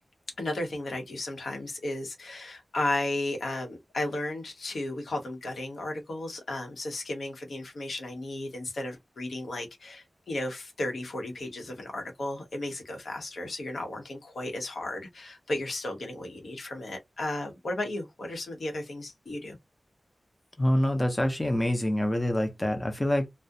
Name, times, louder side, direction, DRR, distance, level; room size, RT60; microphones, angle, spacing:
voice 1, 0.4-19.6, left 1 dB, 85° left, 0.8 m, -34 dB
voice 2, 20.6-23.3, left 1 dB, 20° left, 0.5 m, -26 dB
2.3 x 2.0 x 2.6 m
wide cardioid pair, 85°, 0 cm